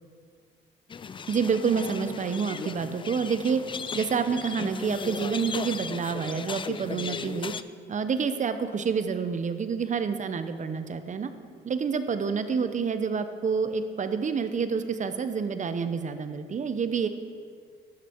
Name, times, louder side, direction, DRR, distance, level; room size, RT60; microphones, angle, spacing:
sound 1, 0.9-7.6, left 6 dB, 25° left, 0.3 m, -36 dB
voice 1, 1.3-3.6 3.9-7.5 7.9-11.3 11.6-17.1, right 6 dB, 40° right, 10 dB, 0.7 m, -28 dB
12.0 x 6.7 x 4.5 m, 2.1 s
cardioid pair, 90°, 20 cm